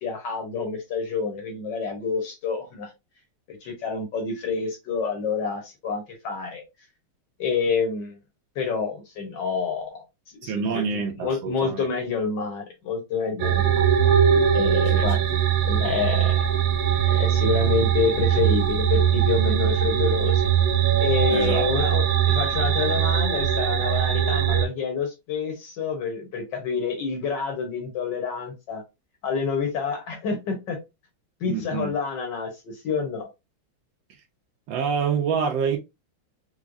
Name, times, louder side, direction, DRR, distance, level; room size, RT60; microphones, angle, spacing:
voice 1, 0.0-2.9 3.5-6.6 7.4-8.2 8.6-10.0 10.4-13.8 14.5-15.2 15.6-16.4 17.0-20.5 21.0-28.8 29.2-30.8 31.4-33.3, left 5 dB, 60° left, 1.4 m, -28 dB
voice 2, 10.5-11.9 14.9-15.1 21.3-21.7 31.5-31.9 34.7-35.8, right 6 dB, 75° right, 1.2 m, -26 dB
sound 1, 13.4-24.7, right 9 dB, 90° right, 1.6 m, -21 dB
4.7 x 2.0 x 2.5 m
omnidirectional pair, 2.4 m